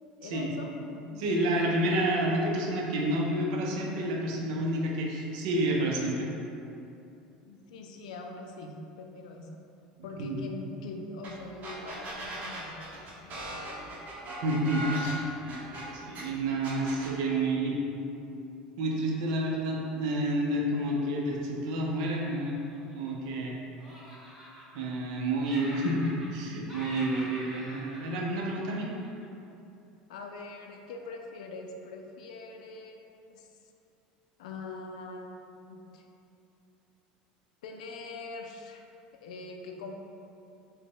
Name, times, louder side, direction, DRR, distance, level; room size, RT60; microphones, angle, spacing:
voice 1, 0.2-1.7 7.5-9.6 10.0-13.9 30.1-33.5 34.4-36.1 37.6-38.8 39.2-39.9, left 3 dB, 85° left, 3 dB, 0.3 m, -43 dB
voice 2, 1.2-6.3 10.2-10.4 14.4-15.6 16.0-17.8 18.8-22.6 22.9-23.5 24.7-28.9, right 1 dB, 75° right, -1 dB, 0.5 m, -29 dB
sound 1, 11.2-11.3 11.6-16.2 16.6-17.1, right 1 dB, 45° right, 0.8 m, -38 dB
Laughter, 22.2-23.5 23.8-25.1 25.4-26.4 26.7-29.3, equal, 5° right, 1.1 m, -45 dB
3.8 x 2.1 x 3.6 m, 2.7 s
hypercardioid pair, 85°, 4 cm